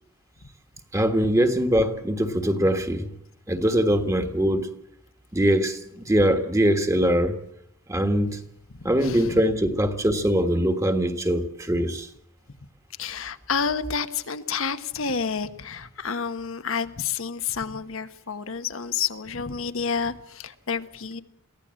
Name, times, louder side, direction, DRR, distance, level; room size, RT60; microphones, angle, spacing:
voice 1, 0.9-3.1 3.5-4.7 5.3-7.4 7.9-8.4 8.8-12.1, equal, 15° right, 1.6 m, -22 dB
voice 2, 8.8-9.5 11.7-11.8 13.0-21.2, left 6 dB, 70° left, 1.2 m, -30 dB
23.5 x 16.0 x 7.7 m
head